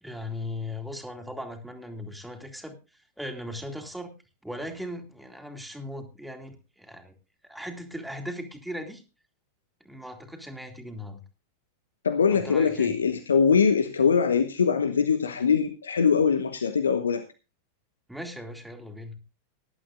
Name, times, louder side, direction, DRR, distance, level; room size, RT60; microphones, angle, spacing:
voice 1, 0.0-4.1 4.4-7.1 7.4-9.0 9.8-11.2 12.3-12.9 18.1-19.2, left 1 dB, ahead, 3 dB, 2.6 m, -38 dB
voice 2, 12.0-17.2, left 6 dB, 70° left, 10 dB, 1.1 m, -22 dB
19.5 x 11.5 x 2.5 m, 0.30 s
figure-of-eight pair, 90°, 0 cm